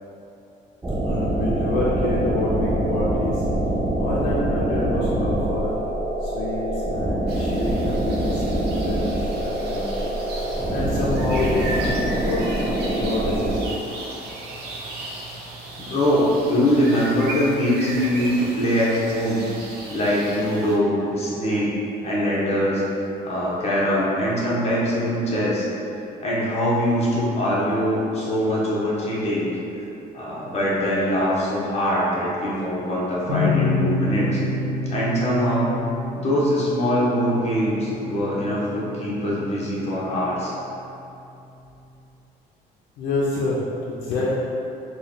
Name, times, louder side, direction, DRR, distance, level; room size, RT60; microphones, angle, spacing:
sound 1, 0.8-13.7, right 1 dB, 10° right, 0.4 m, -24 dB
voice 1, 1.0-3.4 4.0-5.8 6.2-10.1 10.7-13.5 43.0-44.3, left 2 dB, 85° left, -6 dB, 0.5 m, -27 dB
sound 2, 7.3-20.8, right 2 dB, 75° right, 0.6 m, -36 dB
voice 2, 15.8-19.4 19.9-21.8 22.0-22.8 23.2-25.7 26.2-29.5 30.1-34.4 34.9-35.8 36.2-40.6, equal, 40° left, -7 dB, 1.0 m, -22 dB
sound 3, 33.3-40.5, left 2 dB, 40° right, 0.7 m, -28 dB
3.2 x 2.2 x 3.9 m, 2.8 s
cardioid pair, 110°, 17 cm